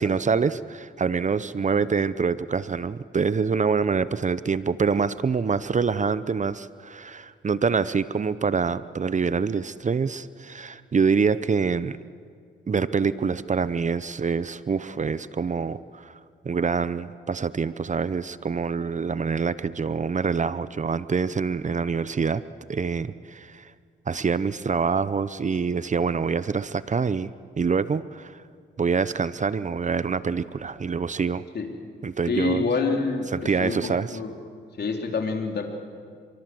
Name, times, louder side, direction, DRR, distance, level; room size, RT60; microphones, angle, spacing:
voice 1, 0.0-12.0 12.7-16.2 16.4-22.4 22.7-23.7 24.1-28.4 28.8-31.4 32.0-32.6 33.3-34.2, right 5 dB, 40° right, 15 dB, 0.8 m, -25 dB
voice 2, 32.3-34.3 34.8-35.7, left 4 dB, 60° left, 2 dB, 3.8 m, -27 dB
28.5 x 24.0 x 7.9 m, 2.2 s
cardioid pair, 65°, 19 cm